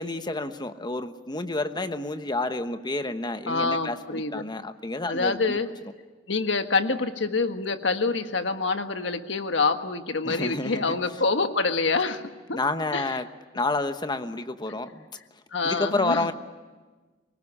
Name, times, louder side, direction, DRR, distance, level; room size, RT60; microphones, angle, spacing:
voice 1, 0.0-5.6 10.2-11.0 12.5-13.3 13.5-15.1 15.6-16.3, left 2 dB, 25° left, 9 dB, 1.1 m, -29 dB
voice 2, 3.5-4.4 5.1-5.7 6.3-12.2 12.5-12.6 12.9-13.2 15.5-16.3, left 3 dB, 85° left, 7 dB, 1.5 m, -26 dB
24.0 x 20.0 x 9.9 m, 1.3 s
head